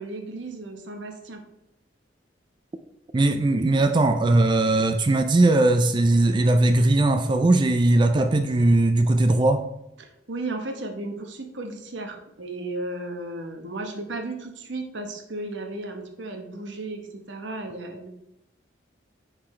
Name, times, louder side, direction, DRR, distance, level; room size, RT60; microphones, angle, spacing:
voice 1, 0.0-1.4 10.0-17.0 17.3-18.1, right 2 dB, 80° right, 4 dB, 1.0 m, -34 dB
voice 2, 3.1-9.6, right 2 dB, 25° right, 8 dB, 0.3 m, -19 dB
9.8 x 4.0 x 3.2 m, 0.86 s
head